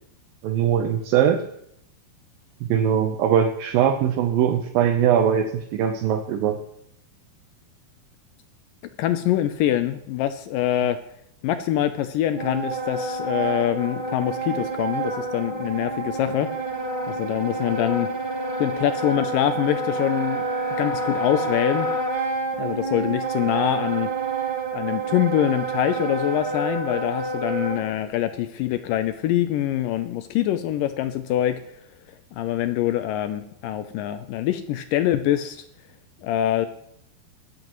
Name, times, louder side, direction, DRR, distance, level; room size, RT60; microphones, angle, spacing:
voice 1, 0.4-1.4 2.6-6.6, right 9 dB, 75° right, 3 dB, 2.4 m, -21 dB
voice 2, 9.0-11.0 11.4-16.5 17.1-18.1 18.6-20.4 20.8-21.9 22.6-24.1 24.7-31.6 32.4-35.6 36.2-36.7, left 12 dB, 85° left, 10 dB, 1.9 m, -24 dB
Wind instrument woodwind instrument, 12.3-27.8, right 3 dB, 20° right, 1.7 m, -28 dB
22.5 x 8.0 x 3.1 m, 0.74 s
omnidirectional pair, 4.5 m